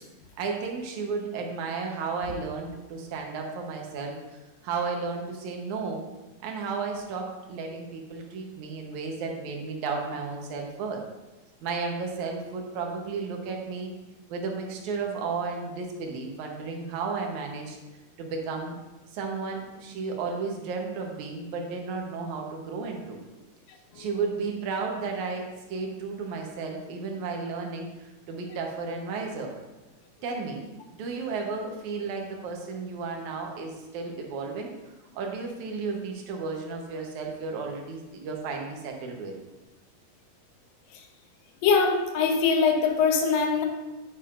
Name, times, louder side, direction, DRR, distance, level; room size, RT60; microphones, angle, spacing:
voice 1, 0.4-4.1 4.6-6.0 6.4-11.0 11.6-13.9 14.3-17.8 18.2-18.8 19.1-23.2 24.0-27.9 28.3-29.5 30.2-34.7 35.2-39.3, right 4 dB, 65° right, 1 dB, 2.3 m, -33 dB
voice 2, 41.6-43.7, left 5 dB, 90° left, 3 dB, 2.7 m, -22 dB
9.3 x 9.0 x 2.5 m, 1.1 s
omnidirectional pair, 4.0 m